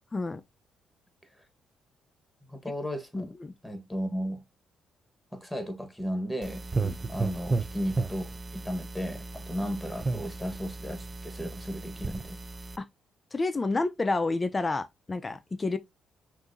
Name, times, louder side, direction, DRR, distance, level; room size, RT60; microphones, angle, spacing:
voice 1, 0.1-0.4 3.1-3.5 6.8-7.0 12.8-12.9 13.3-15.8, left 3 dB, 25° left, 0.7 m, -29 dB
voice 2, 2.4-3.3 3.6-4.4 5.3-6.6 7.1-12.4, equal, 5° left, 1.5 m, -35 dB
sound 1, 6.4-12.8, right 3 dB, 25° right, 0.6 m, -34 dB
5.9 x 2.8 x 2.7 m
cardioid pair, 90°, 0 cm